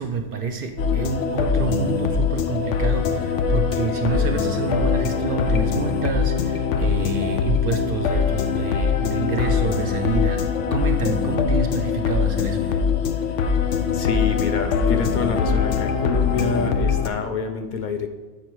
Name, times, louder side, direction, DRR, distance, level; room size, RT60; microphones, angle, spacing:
voice 1, 0.0-10.4 10.7-12.8, right 5 dB, 60° right, 6 dB, 0.6 m, -28 dB
sound 1, 0.8-17.1, left 6 dB, 85° left, 0.9 m, -22 dB
voice 2, 13.9-18.1, left 4 dB, 55° left, 6 dB, 0.6 m, -27 dB
8.1 x 4.4 x 4.6 m, 1.3 s
omnidirectional pair, 1.2 m